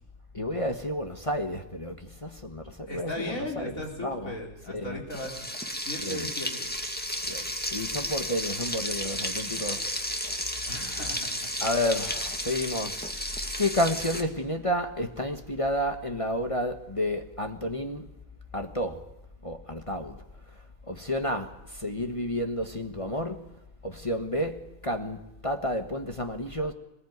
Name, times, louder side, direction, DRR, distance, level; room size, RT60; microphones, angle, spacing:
voice 1, 0.3-4.4 4.6-5.0 6.0-6.3 7.3-10.2 10.6-10.8 11.6-13.1 13.6-18.1 18.5-19.1 19.4-20.2 20.9-23.5 23.8-26.7, left 1 dB, 25° left, 1.4 m, -31 dB
voice 2, 2.9-5.5 5.8-6.7 10.7-11.5, left 1 dB, 75° left, 4.9 m, -37 dB
Frying (food), 5.1-14.2, equal, 5° left, 1.9 m, -33 dB
22.5 x 20.0 x 9.5 m
omnidirectional pair, 1.4 m